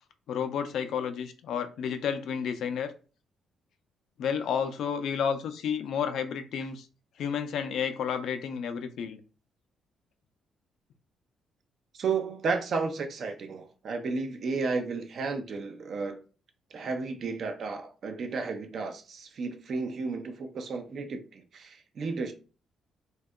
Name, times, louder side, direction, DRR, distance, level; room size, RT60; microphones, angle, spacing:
voice 1, 0.3-2.9 4.2-6.9 7.2-9.2, left 7 dB, 75° left, 0.3 m, -31 dB
voice 2, 11.9-16.2 16.7-22.3, right 4 dB, 55° right, 0.5 m, -33 dB
2.7 x 2.2 x 2.2 m
cardioid pair, 90°, 0 cm